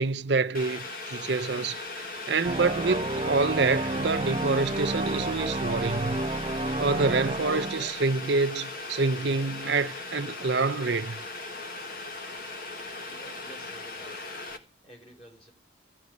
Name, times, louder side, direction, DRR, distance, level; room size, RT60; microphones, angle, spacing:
voice 1, 0.0-6.2 6.8-11.2, right 3 dB, 60° right, 0.6 m, -27 dB
Boiling, 0.5-14.6, left 3 dB, 50° left, 1.7 m, -38 dB
sound 1, 2.4-8.3, right 2 dB, 25° right, 0.8 m, -31 dB
voice 2, 12.7-14.2 14.8-15.5, right 1 dB, 30° left, 4.5 m, -52 dB
14.5 x 5.3 x 9.7 m
head